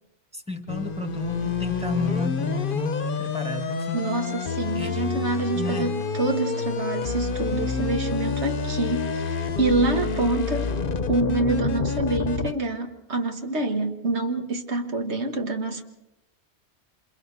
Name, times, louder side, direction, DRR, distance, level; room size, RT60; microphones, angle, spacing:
voice 1, 0.3-4.0 4.7-5.0 5.5-5.9, left 2 dB, 5° right, 6 dB, 1.6 m, -31 dB
sound 1, 0.7-12.5, left 5 dB, 55° left, 1.1 m, -28 dB
voice 2, 3.9-10.8 11.1-15.8, right 2 dB, 75° right, 4 dB, 1.9 m, -26 dB
27.5 x 27.5 x 4.1 m, 0.90 s
omnidirectional pair, 1.2 m